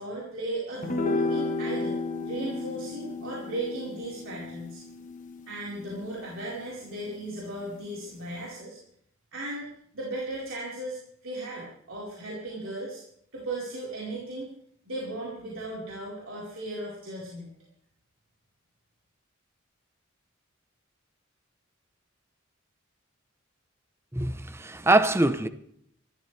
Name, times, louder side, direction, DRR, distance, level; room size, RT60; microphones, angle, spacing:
voice 1, 0.0-4.8 5.5-8.8 9.3-9.7 9.9-13.0 13.3-14.5 14.9-17.5, right 1 dB, 75° right, 4.6 m, -36 dB
sound 1, 0.8-7.4, left 3 dB, 40° left, 1.4 m, -33 dB
voice 2, 24.1-25.5, right 2 dB, 15° right, 0.8 m, -23 dB
25.0 x 14.0 x 3.4 m
head